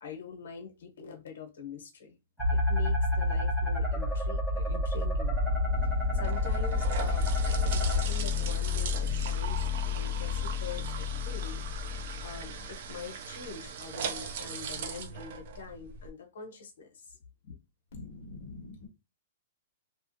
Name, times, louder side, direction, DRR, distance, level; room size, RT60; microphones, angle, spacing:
voice 1, 0.0-2.2 2.5-5.4 5.8-11.6 12.2-17.2 17.4-17.6 17.9-18.0, left 5 dB, 75° left, 0.9 m, -44 dB
sound 1, 2.4-8.0, left 1 dB, 10° right, 1.8 m, -28 dB
sound 2, 5.1-12.7, left 10 dB, 15° left, 0.6 m, -33 dB
sound 3, 5.7-16.1, right 5 dB, 50° right, 0.4 m, -39 dB
voice 2, 17.9-18.9, left 2 dB, 45° left, 0.9 m, -45 dB
2.8 x 2.3 x 2.6 m
hypercardioid pair, 165°, 0 cm